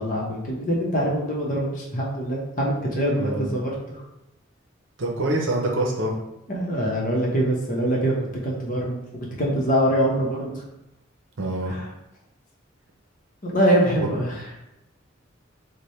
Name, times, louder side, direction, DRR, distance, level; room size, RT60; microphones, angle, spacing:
voice 1, 0.0-4.0 6.5-8.1 8.4-10.6 11.7-11.8 13.4-14.5, equal, 40° left, -3 dB, 0.8 m, -24 dB
voice 2, 3.2-3.5 5.0-6.1 11.4-11.7 14.0-14.1, right 1 dB, 65° right, 0 dB, 0.7 m, -25 dB
3.3 x 2.2 x 4.1 m, 0.89 s
head